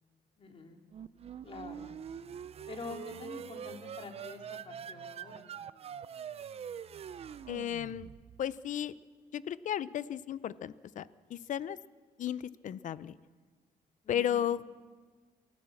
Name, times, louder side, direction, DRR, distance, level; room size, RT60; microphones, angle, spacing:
voice 1, 0.4-0.8 1.4-2.0 2.7-5.4 14.0-14.4, left 4 dB, 40° left, 3 dB, 2.8 m, -46 dB
sound 1, 0.9-8.5, right 8 dB, 40° right, 0.5 m, -44 dB
voice 2, 7.5-8.1 8.4-8.9 9.3-11.8 12.2-13.2 14.1-14.6, left 10 dB, 55° left, 17 dB, 0.6 m, -34 dB
28.0 x 14.5 x 7.2 m, 1.5 s
cardioid pair, 135°, 16 cm